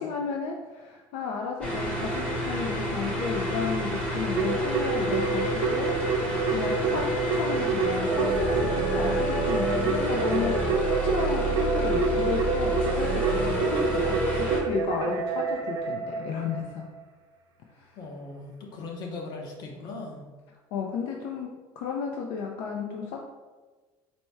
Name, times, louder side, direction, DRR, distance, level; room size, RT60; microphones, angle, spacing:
voice 1, 0.0-16.9 17.8-17.9 20.7-23.2, left 5 dB, 75° left, 1 dB, 0.4 m, -33 dB
sound 1, 1.6-14.6, right 1 dB, 10° left, 0.8 m, -29 dB
Keyboard (musical), 4.4-16.8, right 4 dB, 45° right, 0.5 m, -28 dB
voice 2, 18.0-20.3, left 3 dB, 50° left, 1 dB, 0.8 m, -39 dB
4.2 x 2.2 x 4.5 m, 1.3 s
cardioid pair, 155°, 9 cm